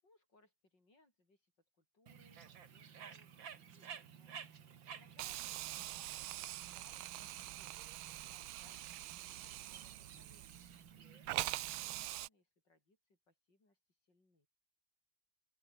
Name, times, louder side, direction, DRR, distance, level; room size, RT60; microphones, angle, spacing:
voice 1, 0.0-3.3 3.6-14.5, left 2 dB, 60° left, 8.0 m, -72 dB
Bird, 2.1-12.1, right 7 dB, 70° right, 2.5 m, -55 dB
Hiss, 5.2-10.9 11.3-12.3, right 16 dB, 90° right, 1.5 m, -44 dB
open air
omnidirectional pair, 2.2 m